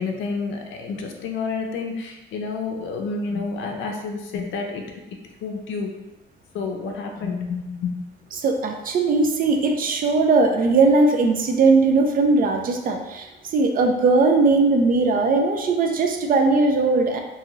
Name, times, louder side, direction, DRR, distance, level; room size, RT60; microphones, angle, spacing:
voice 1, 0.0-5.0 5.4-5.9 6.5-8.1, left 4 dB, 75° left, 2 dB, 0.5 m, -29 dB
voice 2, 8.4-17.2, right 3 dB, 45° right, 3 dB, 0.5 m, -19 dB
2.7 x 2.4 x 3.0 m, 1.0 s
cardioid pair, 90°, 20 cm